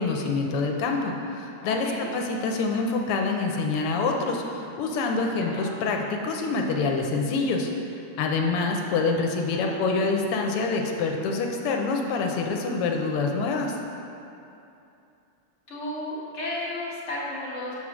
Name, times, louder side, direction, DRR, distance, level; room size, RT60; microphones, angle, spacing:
voice 1, 0.0-7.7 8.2-13.8, left 3 dB, 90° left, 2 dB, 1.6 m, -26 dB
voice 2, 1.6-2.1 5.3-5.7 9.4-9.9 15.7-17.7, left 1 dB, 35° left, -7 dB, 1.8 m, -34 dB
7.1 x 4.6 x 6.1 m, 2.7 s
omnidirectional pair, 2.4 m